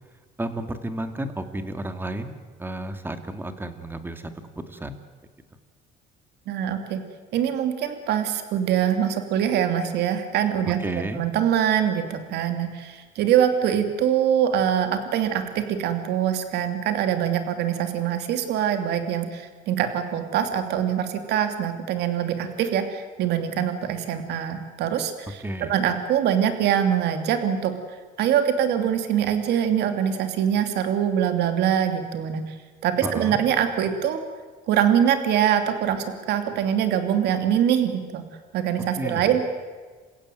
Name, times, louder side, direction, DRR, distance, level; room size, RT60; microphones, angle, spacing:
voice 1, 0.4-4.3 4.6-5.0 10.7-11.2 25.4-25.7 33.0-33.4 39.0-39.3, right 1 dB, 10° right, 8 dB, 2.4 m, -32 dB
voice 2, 6.5-7.0 7.3-10.8 11.2-27.7 28.2-32.5 32.8-34.2 34.7-38.2 38.5-39.5, right 9 dB, 80° right, 7 dB, 2.7 m, -23 dB
28.5 x 16.0 x 9.3 m, 1.5 s
cardioid pair, 110°, 17 cm